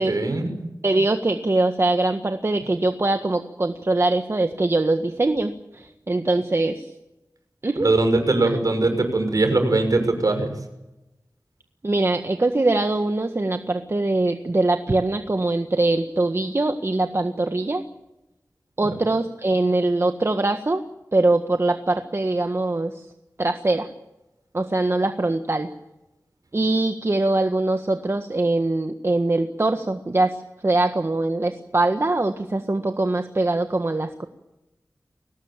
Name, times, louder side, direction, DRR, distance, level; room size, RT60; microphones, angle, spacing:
voice 1, 0.0-0.7 7.8-10.5 18.8-18.9, right 2 dB, 65° right, 7 dB, 6.1 m, -21 dB
voice 2, 0.8-6.9 7.6-7.9 8.4-8.5 11.8-17.8 18.8-20.8 21.1-23.0 23.4-23.9 24.5-25.7 26.5-34.3, right 2 dB, 40° right, 6 dB, 1.6 m, -22 dB
22.5 x 19.0 x 9.1 m, 0.92 s
wide cardioid pair, 75°, 7 cm